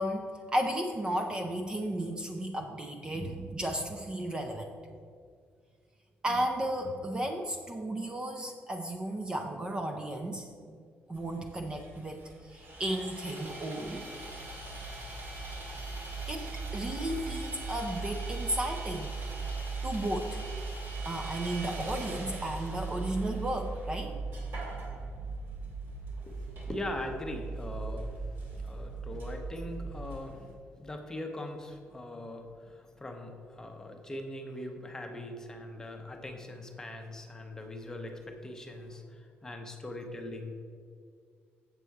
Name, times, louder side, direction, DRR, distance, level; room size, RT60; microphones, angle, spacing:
voice 1, 0.0-4.7 6.2-10.5 11.1-14.0 16.3-16.5 16.7-19.1 19.8-20.4 21.0-24.1, right 1 dB, 20° right, 3 dB, 0.5 m, -34 dB
Sawing, 11.1-30.5, right 1 dB, 55° right, 1.9 m, -46 dB
sound 1, 14.0-30.2, right 4 dB, 85° right, 1.2 m, -39 dB
voice 2, 26.1-28.1 28.6-30.4 30.8-40.5, left 1 dB, 15° left, 4 dB, 0.8 m, -41 dB
7.5 x 6.7 x 4.6 m, 2.1 s
cardioid pair, 155°, 4 cm